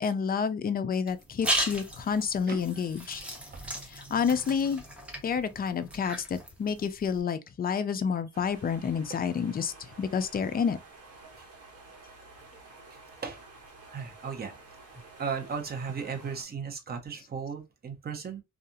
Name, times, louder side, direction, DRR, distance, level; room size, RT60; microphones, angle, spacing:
voice 1, 0.0-3.2 3.9-4.8 5.2-10.8, left 6 dB, 30° left, 0.4 m, -29 dB
sound 1, 1.1-7.2, equal, 5° right, 0.9 m, -36 dB
sound 2, 8.3-16.4, right 3 dB, 45° right, 1.2 m, -51 dB
voice 2, 12.9-13.4 13.9-14.5 15.2-18.4, right 6 dB, 30° right, 0.7 m, -36 dB
2.7 x 2.4 x 2.5 m
cardioid pair, 115°, 33 cm